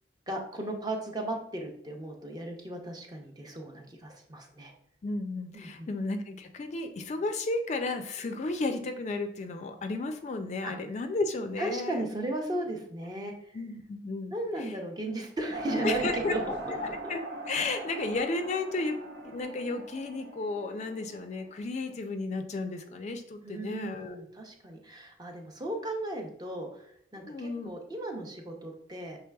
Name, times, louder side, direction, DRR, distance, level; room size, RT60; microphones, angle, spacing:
voice 1, 0.3-4.7 5.5-5.7 10.6-10.7 11.6-13.6 14.3-16.6 17.0-17.1 23.4-29.2, right 1 dB, 25° right, 2 dB, 0.6 m, -35 dB
voice 2, 5.0-12.0 13.5-14.3 14.6-14.8 15.8-16.4 17.1-19.0 19.2-24.2 27.3-27.7, left 3 dB, 40° left, 6 dB, 0.3 m, -33 dB
sound 1, 15.5-21.6, right 2 dB, 75° right, 0.6 m, -40 dB
5.9 x 3.2 x 2.2 m, 0.69 s
head